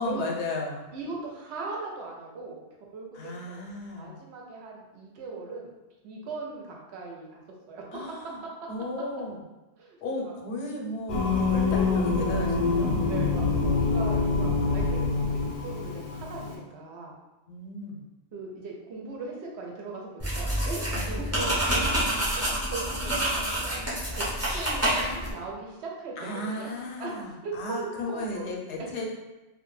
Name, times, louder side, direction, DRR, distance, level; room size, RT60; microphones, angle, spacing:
voice 1, 0.0-0.9 3.1-4.2 7.9-8.4 8.7-9.4 10.0-11.2 11.5-13.0 17.5-18.1 20.9-21.0 21.3-21.5 26.2-29.1, left 2 dB, 90° left, 0 dB, 0.8 m, -34 dB
voice 2, 0.9-2.6 2.9-3.6 4.0-5.7 6.0-7.4 7.7-7.8 9.8-9.9 11.4-11.6 13.0-17.1 18.3-26.3 26.6-26.7 27.0-27.1 27.4-28.4, right 3 dB, 85° right, -1 dB, 0.9 m, -39 dB
Singing, 11.1-16.6, left 4 dB, 60° left, 0.6 m, -26 dB
sound 1, 20.2-25.3, right 1 dB, 15° right, 0.6 m, -28 dB
2.2 x 2.1 x 3.0 m, 1.1 s
omnidirectional pair, 1.1 m